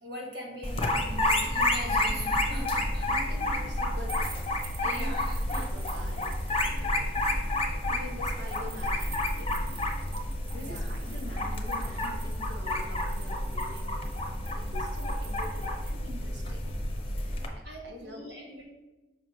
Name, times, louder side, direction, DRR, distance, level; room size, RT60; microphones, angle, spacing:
voice 1, 0.0-3.1 4.8-5.7 10.5-10.9 17.2-17.4 17.6-18.6, equal, 70° right, -2 dB, 2.0 m, -41 dB
sound 1, 0.6-17.5, left 1 dB, 35° left, 0.7 m, -30 dB
voice 2, 3.0-9.9 10.5-16.6 17.5-18.4, left 1 dB, 90° right, 1 dB, 1.3 m, -46 dB
sound 2, 4.1-6.8 8.2-15.9, right 6 dB, 35° right, 0.6 m, -49 dB
6.0 x 3.1 x 5.7 m, 1.1 s
head